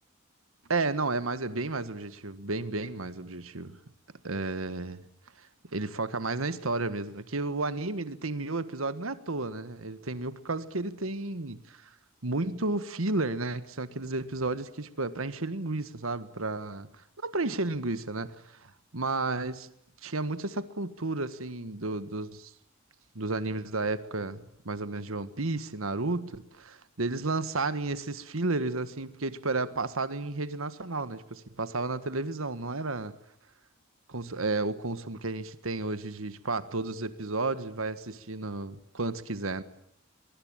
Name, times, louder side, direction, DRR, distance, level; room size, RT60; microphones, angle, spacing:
voice 1, 0.7-3.8 4.2-5.0 5.4-5.5 5.7-11.9 12.2-16.9 17.2-19.7 20.0-22.5 23.1-33.1 34.1-39.6, right 3 dB, 90° right, 1.6 m, -32 dB
24.0 x 23.5 x 8.8 m
head